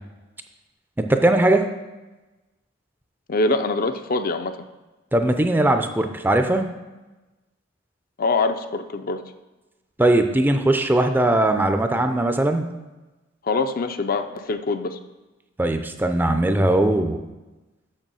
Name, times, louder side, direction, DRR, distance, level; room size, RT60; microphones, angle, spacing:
voice 1, 1.0-1.7 5.1-6.7 10.0-12.6 15.6-17.2, right 1 dB, 10° right, 7 dB, 0.5 m, -19 dB
voice 2, 3.3-4.6 8.2-9.2 13.4-15.0, left 3 dB, 45° left, 9 dB, 0.5 m, -24 dB
6.6 x 6.3 x 6.2 m, 1.1 s
head